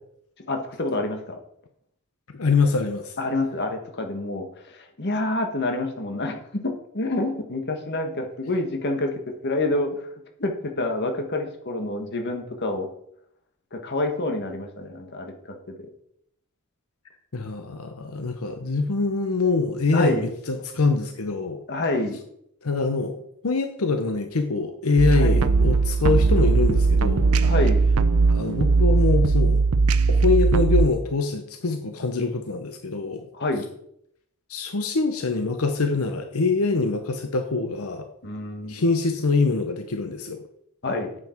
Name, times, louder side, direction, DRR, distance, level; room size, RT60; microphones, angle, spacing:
voice 1, 0.5-1.4 3.2-9.1 9.4-10.0 10.4-12.9 13.7-15.3 19.9-20.3 21.7-22.2 25.1-25.4 27.4-27.8 33.3-33.7 38.2-38.8 40.8-41.1, left 2 dB, 55° left, 4 dB, 1.5 m, -27 dB
voice 2, 2.3-3.2 17.3-21.6 22.6-27.3 28.3-29.6 30.1-33.3 34.5-38.1 38.7-40.4, left 4 dB, 85° left, 6 dB, 0.9 m, -24 dB
sound 1, 25.0-30.9, right 4 dB, 90° right, 0.6 m, -19 dB
9.5 x 7.8 x 4.5 m, 0.73 s
head